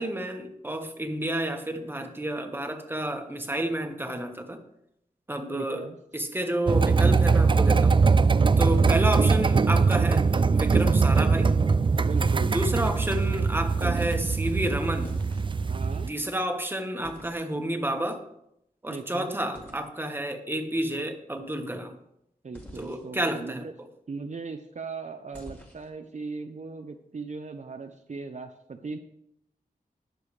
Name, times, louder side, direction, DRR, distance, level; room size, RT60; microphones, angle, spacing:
voice 1, 0.0-4.6 5.3-5.9 6.1-8.0 8.6-11.6 12.5-15.2 16.1-18.2 18.8-21.9 22.7-23.6, right 1 dB, 15° right, 5 dB, 1.4 m, -30 dB
voice 2, 5.5-6.0 12.0-12.5 15.7-16.1 18.9-19.4 22.4-23.7 24.1-29.0, right 4 dB, 50° right, 5 dB, 0.8 m, -38 dB
sound 1, 6.7-16.1, right 4 dB, 35° right, 0.3 m, -22 dB
sound 2, 7.4-7.5 8.7-9.1 10.8-11.2 12.8-13.5 15.0-15.7 17.0-17.4 19.5-19.8 22.5-23.0 25.3-25.9, equal, 10° left, 2.3 m, -47 dB
20.0 x 6.8 x 3.3 m, 0.78 s
wide cardioid pair, 90°, 15 cm